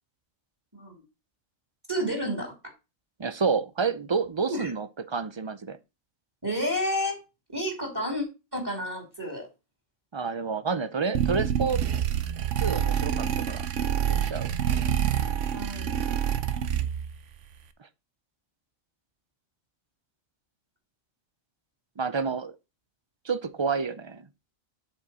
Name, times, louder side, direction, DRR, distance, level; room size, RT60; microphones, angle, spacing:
voice 1, 1.9-2.5 4.5-4.7 6.4-7.2 7.5-8.2 8.5-9.5 15.5-16.0, equal, 15° right, 3.0 m, -30 dB
voice 2, 3.2-5.8 10.1-11.8 12.6-13.7 14.1-14.5 17.8-17.9 22.0-22.6 23.2-24.3, right 5 dB, 45° right, 0.3 m, -29 dB
sound 1, 11.1-17.2, right 9 dB, 65° right, 1.0 m, -27 dB
8.2 x 6.0 x 4.2 m
omnidirectional pair, 1.4 m